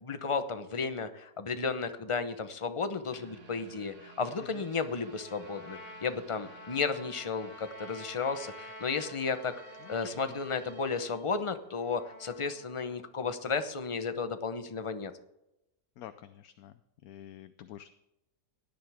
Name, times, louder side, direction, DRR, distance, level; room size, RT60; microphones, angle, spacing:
voice 1, 0.0-9.5 9.9-15.1, left 5 dB, 30° left, 9 dB, 0.6 m, -33 dB
sound 1, 3.1-12.1 12.4-12.5 13.0-13.1, right 5 dB, 75° right, 2.4 m, -55 dB
Trumpet, 5.0-13.1, left 1 dB, 50° left, 2.0 m, -50 dB
voice 2, 9.8-10.4 16.0-16.7 17.0-17.9, left 11 dB, 70° left, 11 dB, 1.0 m, -48 dB
17.5 x 10.5 x 3.5 m, 0.90 s
omnidirectional pair, 1.7 m